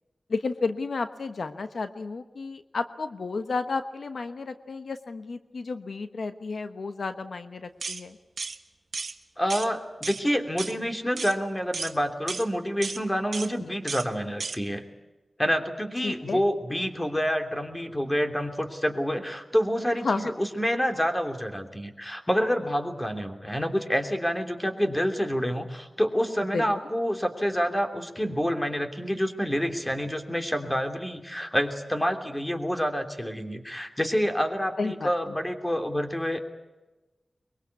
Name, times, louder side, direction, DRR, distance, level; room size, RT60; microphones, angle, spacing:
voice 1, 0.3-8.2 16.0-16.4 20.0-20.3 26.5-26.7 34.8-35.3, left 4 dB, 75° left, 9 dB, 1.1 m, -32 dB
sound 1, 7.8-8.0 8.4-8.6 8.9-9.1 9.5-9.7 10.0-10.2 10.6-10.8 11.2-11.4 11.7-11.9 12.3-12.5 12.8-13.0 13.3-13.5 13.9-14.1 14.4-14.6, right 4 dB, 70° right, 1.3 m, -34 dB
voice 2, 9.4-14.8 15.4-36.4, equal, 10° left, 5 dB, 3.0 m, -28 dB
23.0 x 23.0 x 8.3 m, 1.1 s
wide cardioid pair, 90°, 0 cm